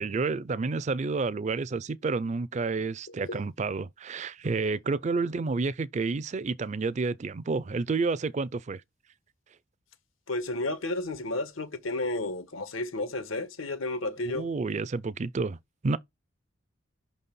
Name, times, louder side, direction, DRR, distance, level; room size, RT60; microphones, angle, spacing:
voice 1, 0.0-8.8 14.3-15.6 15.8-16.0, right 4 dB, 35° right, 0.4 m, -30 dB
voice 2, 10.3-14.5, left 2 dB, 85° left, 1.4 m, -32 dB
5.8 x 4.1 x 5.4 m
head